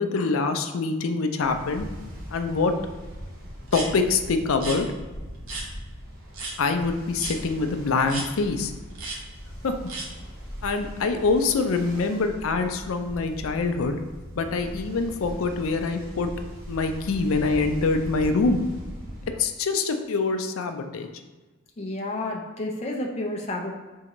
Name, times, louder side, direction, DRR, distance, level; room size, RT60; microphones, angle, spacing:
voice 1, 0.0-1.9 2.3-2.7 3.7-4.9 6.6-8.7 9.6-9.8 10.6-14.0 14.4-16.3 16.7-18.6 19.3-21.1, left 4 dB, 80° left, 7 dB, 0.4 m, -25 dB
Ocean, 1.4-19.3, equal, 45° right, 1.1 m, -40 dB
sound 1, 3.7-3.9 4.5-4.8 5.5-5.7 6.3-6.5 7.2-7.4 8.1-8.3 8.9-9.2 9.9-10.1, right 3 dB, 80° right, 1.0 m, -33 dB
voice 2, 21.8-23.7, left 1 dB, 30° left, -1 dB, 0.5 m, -30 dB
4.3 x 3.6 x 3.0 m, 1.2 s
head